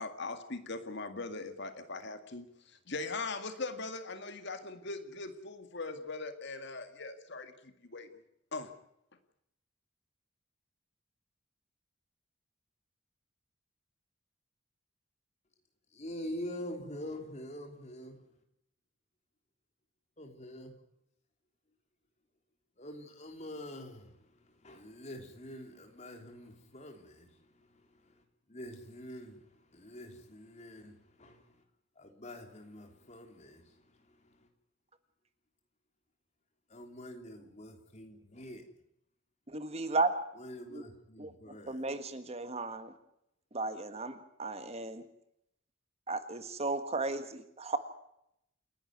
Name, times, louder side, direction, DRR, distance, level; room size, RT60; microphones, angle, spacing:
voice 1, 0.0-8.2 8.5-8.7, left 3 dB, 55° left, 2.1 m, -40 dB
voice 2, 15.9-18.2 20.2-20.8 22.8-31.6 32.0-34.5 36.7-38.6 40.4-41.8, left 1 dB, 35° left, 3.5 m, -46 dB
voice 3, 39.5-40.1 40.7-40.8 41.2-41.3 41.7-42.9 43.5-45.0 46.1-47.8, right 3 dB, 30° right, 1.6 m, -34 dB
29.0 x 11.5 x 9.4 m
head